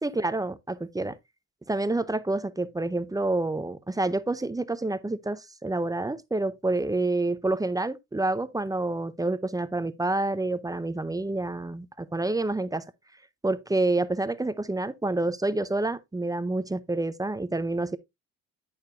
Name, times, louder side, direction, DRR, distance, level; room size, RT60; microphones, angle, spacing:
voice 1, 0.0-1.2 1.7-12.8 13.4-18.0, right 2 dB, 10° right, 0.6 m, -28 dB
8.7 x 6.7 x 2.6 m
cardioid pair, 85°, 34 cm